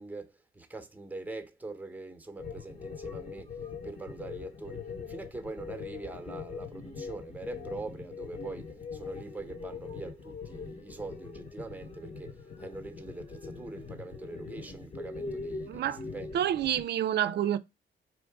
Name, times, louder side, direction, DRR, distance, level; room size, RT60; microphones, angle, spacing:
voice 1, 0.0-3.6 3.8-16.4, right 3 dB, 10° right, 0.9 m, -43 dB
sound 1, 2.4-16.8, left 4 dB, 35° left, 1.2 m, -42 dB
voice 2, 15.7-16.0 16.3-17.6, right 10 dB, 60° right, 0.5 m, -28 dB
4.6 x 2.5 x 3.5 m
cardioid pair, 90°, 20 cm